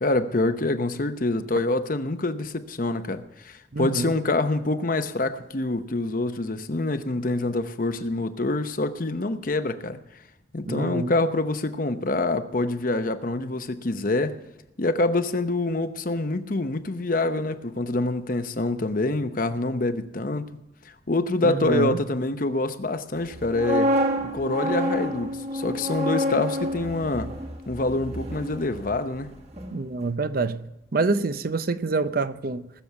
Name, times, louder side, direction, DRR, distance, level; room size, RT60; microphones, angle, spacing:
voice 1, 0.0-10.0 10.5-14.4 14.8-20.5 21.1-23.9 24.3-27.3 27.7-29.3, left 2 dB, 45° left, 0.8 m, -26 dB
voice 2, 3.7-4.1 10.6-11.1 21.4-22.0 29.7-32.7, right 3 dB, 50° right, 0.6 m, -26 dB
sound 1, 23.3-29.3 29.5-29.8, equal, 35° right, 1.5 m, -28 dB
20.0 x 7.0 x 7.0 m
head